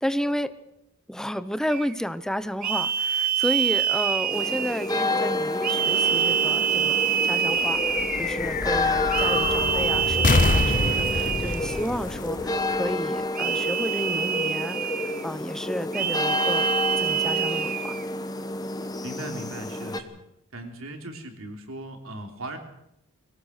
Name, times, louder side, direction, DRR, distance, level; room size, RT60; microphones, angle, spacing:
voice 1, 0.0-0.5 1.1-17.9, equal, 5° left, 14 dB, 0.8 m, -32 dB
sound 1, 1.7-1.9 2.6-5.0 5.6-8.4 9.1-11.9 13.3-15.2 15.9-18.0, right 8 dB, 40° right, 0.9 m, -26 dB
sound 2, 4.3-20.0, left 2 dB, 20° left, 1.2 m, -30 dB
sound 3, 7.5-13.2, left 3 dB, 40° left, 0.8 m, -26 dB
voice 2, 19.0-20.2 20.5-22.6, right 1 dB, 70° right, 4 dB, 3.4 m, -38 dB
23.0 x 17.5 x 6.6 m, 0.83 s
head